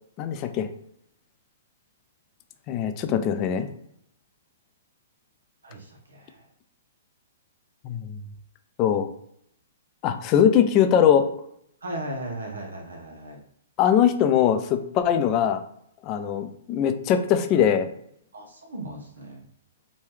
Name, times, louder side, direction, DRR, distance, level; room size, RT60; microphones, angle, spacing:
voice 1, 0.2-0.7 2.7-3.7 7.8-8.2 8.8-9.1 10.0-11.3 13.8-15.6 16.0-17.9, left 9 dB, 35° left, 8 dB, 0.4 m, -21 dB
voice 2, 5.6-6.4 11.8-13.4 18.3-19.4, right 1 dB, 85° right, 0 dB, 0.8 m, -37 dB
3.0 x 2.2 x 3.2 m, 0.72 s
hypercardioid pair, 135°, 0 cm